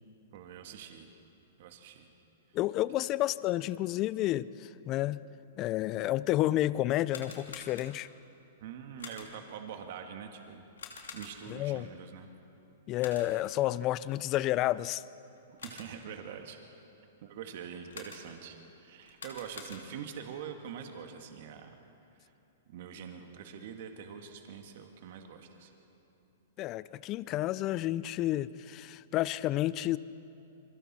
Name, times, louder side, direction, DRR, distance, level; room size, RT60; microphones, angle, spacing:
voice 1, 0.3-1.1 1.6-2.1 8.6-10.7 11.1-12.3 15.6-16.6 17.2-21.7 22.2-22.3 22.7-25.7, right 7 dB, 60° right, 5 dB, 1.8 m, -44 dB
voice 2, 2.5-5.2 5.6-8.1 11.5-11.9 12.9-15.0 26.6-30.0, left 15 dB, 35° left, 19 dB, 0.5 m, -30 dB
sound 1, 7.0-8.2 9.0-9.5 10.8-11.6 13.0-13.5 15.3-16.1 17.9-18.5 19.0-20.2, left 5 dB, 80° left, 2.9 m, -48 dB
28.0 x 23.0 x 4.3 m, 2.8 s
hypercardioid pair, 120°, 0 cm